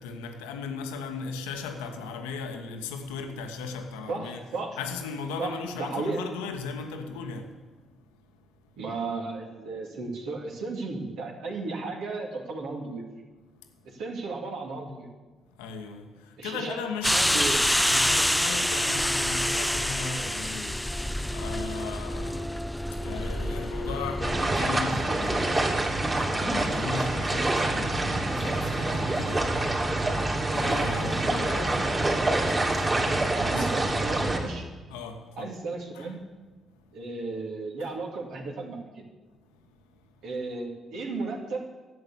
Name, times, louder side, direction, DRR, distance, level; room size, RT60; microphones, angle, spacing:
voice 1, 0.0-4.4 4.8-8.8 13.6-14.0 15.5-33.7 34.9-35.6 35.9-36.2 36.7-37.0 39.5-40.3, left 5 dB, 80° left, 1.1 m, -38 dB
voice 2, 4.1-4.8 5.4-6.2 8.8-13.0 13.8-15.1 16.4-16.8 17.1-17.6 33.3-34.7 35.4-36.2 36.9-39.1 40.2-41.6, right 3 dB, 70° right, 2.4 m, -34 dB
sound 1, 17.0-24.4, equal, 5° left, 0.5 m, -27 dB
sound 2, 24.2-34.4, right 2 dB, 30° right, 2.9 m, -26 dB
12.5 x 7.9 x 8.2 m
hypercardioid pair, 45°, 0 cm